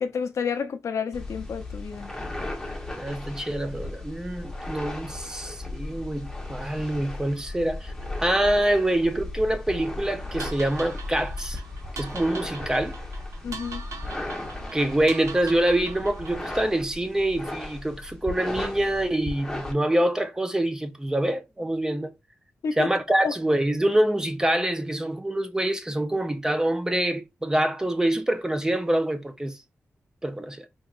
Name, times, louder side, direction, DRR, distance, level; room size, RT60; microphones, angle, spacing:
voice 1, 0.0-2.1 13.4-13.8 22.6-22.9 23.2-23.3, left 6 dB, 75° left, 0.5 m, -30 dB
sound 1, 1.1-19.7, left 2 dB, 5° left, 0.8 m, -36 dB
voice 2, 3.0-7.9 8.2-11.6 12.0-13.0 14.7-22.1 22.8-29.6 30.2-30.7, right 1 dB, 10° right, 0.4 m, -25 dB
sound 2, 10.4-16.6, right 4 dB, 75° right, 0.6 m, -42 dB
4.5 x 2.8 x 2.4 m
wide cardioid pair, 160°, 5 cm